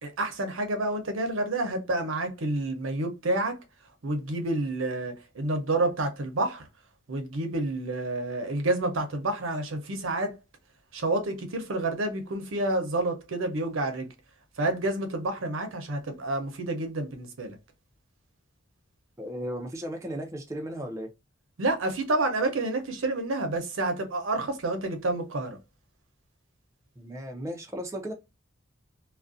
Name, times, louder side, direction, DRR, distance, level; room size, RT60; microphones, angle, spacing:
voice 1, 0.0-3.6 4.0-6.7 7.1-10.3 10.9-14.1 14.6-17.6 21.6-25.6, right 2 dB, 80° right, 0.7 m, -29 dB
voice 2, 19.2-21.1 27.0-28.1, equal, 15° right, 0.4 m, -35 dB
2.4 x 2.1 x 2.5 m
head